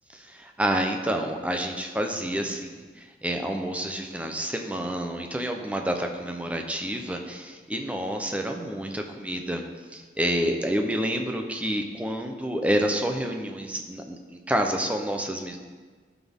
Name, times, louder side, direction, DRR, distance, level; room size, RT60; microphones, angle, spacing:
voice 1, 0.1-9.6 9.9-15.6, right 1 dB, 10° right, 3 dB, 0.7 m, -29 dB
13.5 x 6.1 x 3.6 m, 1.4 s
head